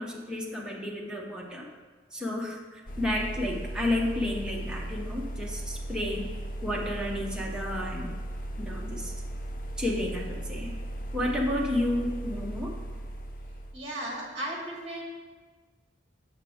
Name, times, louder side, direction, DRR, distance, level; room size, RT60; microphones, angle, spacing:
voice 1, 0.0-1.7 2.1-6.3 6.6-8.1 8.6-9.1 9.8-10.7 11.1-12.8, left 1 dB, 5° right, -3 dB, 0.7 m, -31 dB
sound 1, 2.9-13.7, right 1 dB, 45° left, 0.5 m, -37 dB
voice 2, 13.7-15.0, right 1 dB, 30° right, -3 dB, 1.8 m, -35 dB
7.3 x 5.9 x 3.5 m, 1.4 s
head